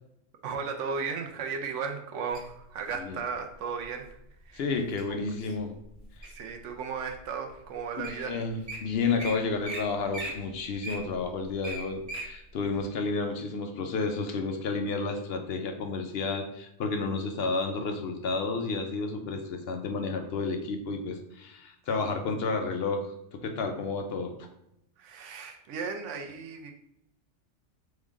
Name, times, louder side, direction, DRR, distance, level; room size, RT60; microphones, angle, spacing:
voice 1, 0.4-4.1 4.4-4.9 5.5-5.6 6.3-8.5 25.0-26.7, right 5 dB, 80° right, 4 dB, 1.0 m, -35 dB
Wild animals, 2.3-3.1 3.8-4.1 4.6-5.0 5.5-6.5 7.1-7.2 7.8-7.9 8.0-8.2 8.5-8.8 9.2-9.3 9.6-9.8 10.1-12.3 12.7-12.8, right 2 dB, 35° right, 0.8 m, -38 dB
voice 2, 4.5-5.8 8.0-24.3, left 4 dB, 65° left, 5 dB, 0.7 m, -31 dB
3.7 x 3.2 x 3.6 m, 0.80 s
omnidirectional pair, 1.2 m